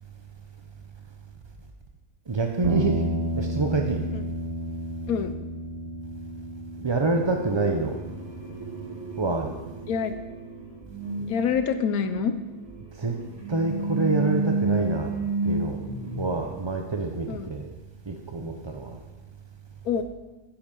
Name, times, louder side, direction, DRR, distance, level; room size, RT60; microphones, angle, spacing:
voice 1, 2.3-3.0 3.3-4.0 6.8-8.0 9.2-9.5 13.0-13.2 13.5-15.1 15.4-15.8 16.2-17.7 18.1-19.0, right 3 dB, 30° right, 3 dB, 0.5 m, -26 dB
sound 1, 2.6-11.0, right 1 dB, 45° right, 0.9 m, -33 dB
sound 2, 7.0-16.4, right 2 dB, 75° right, 4.2 m, -31 dB
voice 2, 11.3-12.3 17.3-17.5 19.8-20.0, left 7 dB, 85° left, 9 dB, 1.2 m, -26 dB
11.5 x 9.9 x 5.3 m, 1.1 s
omnidirectional pair, 1.5 m